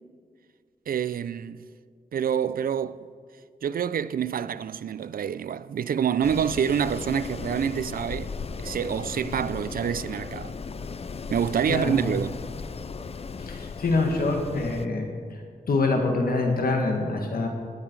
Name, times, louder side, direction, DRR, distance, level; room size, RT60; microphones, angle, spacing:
voice 1, 0.9-1.7 2.1-3.1 3.6-8.4 8.6-10.6 11.3-12.4, right 8 dB, 75° right, 0.4 m, -27 dB
Wind, 6.2-14.9, left 5 dB, 45° left, 0.5 m, -36 dB
voice 2, 13.4-17.5, left 3 dB, 80° left, 1.8 m, -25 dB
17.0 x 11.0 x 4.7 m
wide cardioid pair, 120°, 15 cm